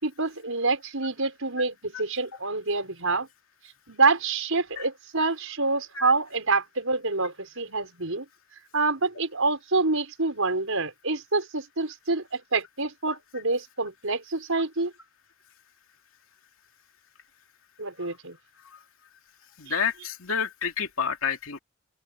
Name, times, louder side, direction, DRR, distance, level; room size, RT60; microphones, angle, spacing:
voice 1, 0.0-3.3 3.9-8.2 8.7-14.9 17.8-18.4, right 3 dB, 75° right, 5.8 m, -27 dB
voice 2, 19.6-21.6, left 6 dB, 75° left, 2.6 m, -29 dB
open air
head